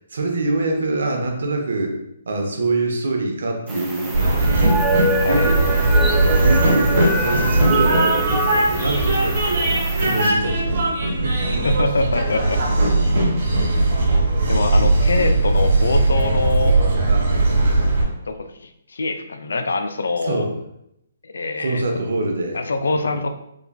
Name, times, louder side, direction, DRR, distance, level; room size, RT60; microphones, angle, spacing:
voice 1, 0.0-2.0 2.3-4.5 5.2-5.6 6.1-9.7 10.0-10.9 11.2-11.7 17.4-17.6 20.2-20.5 21.6-22.7, right 2 dB, 75° right, 2 dB, 0.8 m, -25 dB
sound 1, 3.7-10.3, right 1 dB, 5° right, 0.4 m, -25 dB
Train, 4.1-18.0, right 2 dB, 60° right, 1.4 m, -19 dB
voice 2, 5.2-5.5 11.6-12.6 13.7-14.1 14.5-16.7 18.3-20.5 21.2-21.8 22.5-23.3, left 3 dB, 80° left, 7 dB, 0.4 m, -24 dB
3.6 x 3.3 x 2.2 m, 0.79 s
hypercardioid pair, 150°, 0 cm